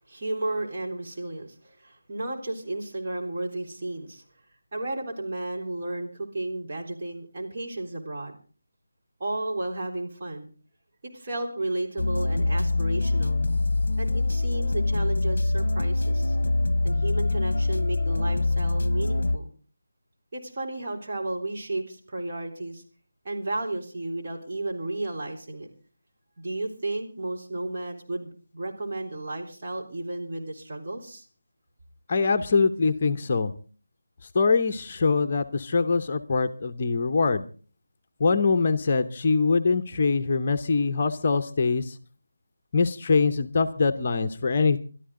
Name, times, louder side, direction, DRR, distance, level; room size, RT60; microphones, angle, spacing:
voice 1, 0.1-4.2 4.7-8.4 9.2-10.5 11.0-13.4 14.0-16.4 16.8-19.5 20.3-22.8 23.2-25.7 26.4-31.2, right 2 dB, 40° right, 1 dB, 3.6 m, -33 dB
sound 1, 12.0-19.4, left 2 dB, 65° left, 0.9 m, -24 dB
voice 2, 32.1-33.5 34.3-37.5 38.2-42.0 42.7-44.8, left 4 dB, 35° left, 7 dB, 0.9 m, -23 dB
23.0 x 13.0 x 3.8 m, 0.38 s
figure-of-eight pair, 170°, 0 cm